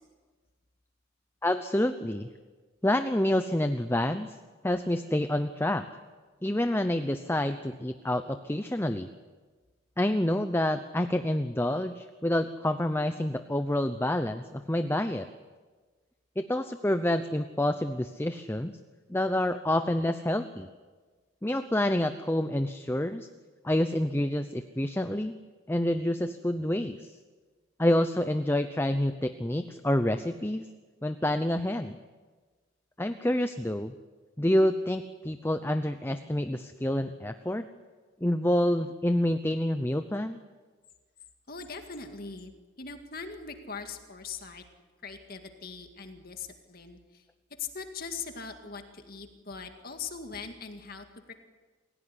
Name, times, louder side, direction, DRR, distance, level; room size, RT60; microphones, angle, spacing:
voice 1, 1.4-2.3 2.8-4.4 4.6-5.9 6.4-9.1 10.0-15.3 16.4-18.7 19.1-20.7 21.4-23.3 23.6-25.3 25.7-27.1 27.8-30.7 31.0-32.0 33.0-33.9 34.4-37.6 38.2-40.4, left 1 dB, 10° left, 9 dB, 0.7 m, -28 dB
voice 2, 41.5-42.5 42.8-44.6 45.0-47.2 47.6-51.3, left 5 dB, 50° left, 5 dB, 2.1 m, -41 dB
28.5 x 16.5 x 9.8 m, 1.4 s
head